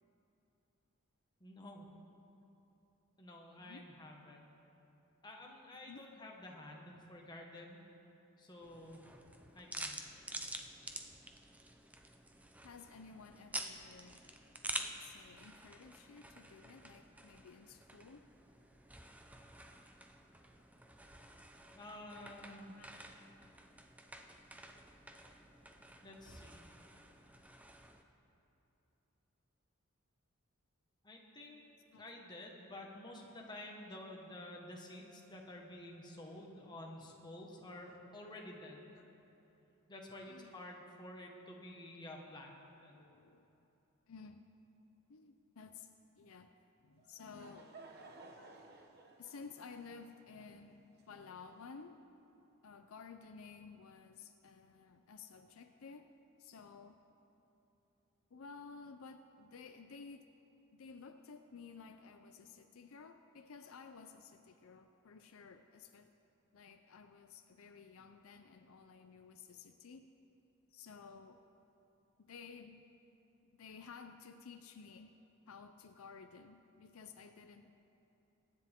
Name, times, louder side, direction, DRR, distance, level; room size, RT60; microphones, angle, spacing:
voice 1, 1.4-1.9 3.2-4.5 5.2-7.8 8.4-9.0 9.5-10.0 21.7-22.7 26.0-26.6 31.0-31.6 31.9-38.9 39.9-43.0, left 1 dB, 20° left, -1 dB, 1.5 m, -51 dB
sound 1, 8.6-28.0, right 1 dB, 5° right, 0.6 m, -49 dB
voice 2, 12.6-14.3 14.7-18.3 22.8-23.1 31.9-32.1 37.0-37.2 39.0-39.1 40.3-40.6 42.9-43.5 44.1-44.4 45.1-46.5 46.8-47.8 49.2-52.0 52.6-56.1 56.4-57.0 58.3-60.3 60.7-66.1 66.5-70.1 70.7-71.4 72.2-72.8 73.4-75.1 75.5-77.7, left 5 dB, 70° left, 7 dB, 0.5 m, -54 dB
Laughter / Crowd, 47.0-51.6, right 3 dB, 50° right, 1.2 m, -57 dB
23.0 x 9.8 x 3.7 m, 3.0 s
head